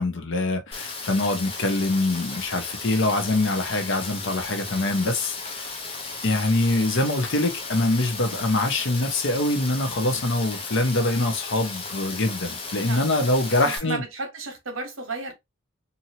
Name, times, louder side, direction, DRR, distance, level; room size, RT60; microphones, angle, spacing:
voice 1, 0.0-5.7 6.2-14.0, left 2 dB, 60° left, 0.7 m, -24 dB
Rain, 0.7-13.8, left 3 dB, 25° left, 0.7 m, -35 dB
voice 2, 13.6-15.3, right 3 dB, 65° right, 1.1 m, -33 dB
2.8 x 2.7 x 2.7 m
head